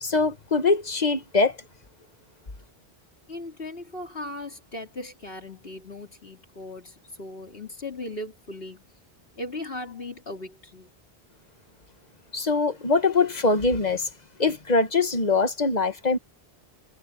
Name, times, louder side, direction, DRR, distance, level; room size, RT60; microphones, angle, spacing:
voice 1, 0.0-1.6 12.3-14.1 14.4-16.2, left 3 dB, 45° left, 1.4 m, -23 dB
voice 2, 3.3-8.9 9.4-10.9, left 2 dB, 65° left, 3.5 m, -38 dB
omnidirectional pair, 1.0 m